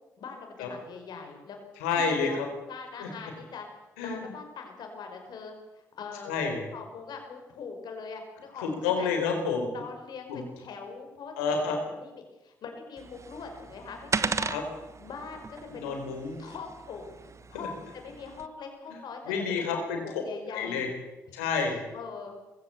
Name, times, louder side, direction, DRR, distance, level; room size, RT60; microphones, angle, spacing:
voice 1, 0.2-1.6 1.9-2.4 2.7-3.7 4.0-8.7 9.0-9.1 9.7-14.6 15.0-16.0 16.4-17.1 17.5-20.9 21.7-22.4, left 5 dB, 65° left, 4 dB, 5.5 m, -42 dB
voice 2, 1.8-2.5 3.0-3.1 4.0-4.3 6.2-6.6 8.6-9.7 10.3-10.4 11.4-11.8 14.5-14.6 15.7-16.4 17.5-17.7 18.9-19.0 19.3-20.2 20.5-20.9 21.3-21.8, left 5 dB, 90° left, 4 dB, 4.3 m, -29 dB
sound 1, 13.0-18.5, right 5 dB, 40° right, 1.2 m, -36 dB
21.0 x 16.0 x 8.3 m, 1.0 s
hypercardioid pair, 45°, 8 cm